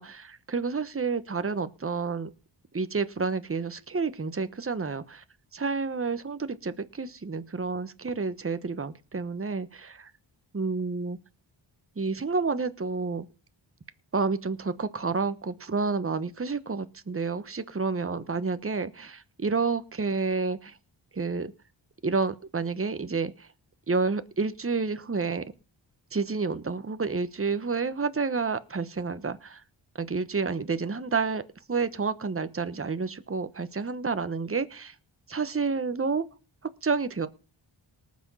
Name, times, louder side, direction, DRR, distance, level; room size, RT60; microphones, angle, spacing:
voice 1, 0.0-2.3 2.7-5.2 5.5-10.1 10.5-11.2 12.0-13.3 14.1-20.8 21.1-21.5 22.0-23.5 23.9-25.4 26.1-29.6 30.0-31.4 31.7-34.9 35.3-36.2 36.8-37.3, right 4 dB, 30° right, 1.2 m, -29 dB
19.0 x 6.3 x 5.6 m
cardioid pair, 45°, 47 cm